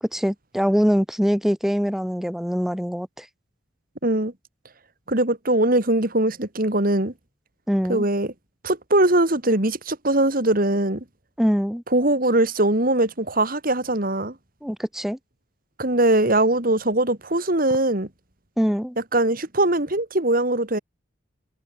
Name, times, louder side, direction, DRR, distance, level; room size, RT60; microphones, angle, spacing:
voice 1, 0.0-3.3 7.7-8.0 11.4-11.8 14.6-15.2 18.6-19.0, equal, ahead, 1.4 m, -23 dB
voice 2, 4.0-4.3 5.1-7.1 7.9-8.3 8.6-11.0 11.9-14.3 15.8-18.1 19.1-20.8, right 1 dB, 45° right, 2.8 m, -21 dB
head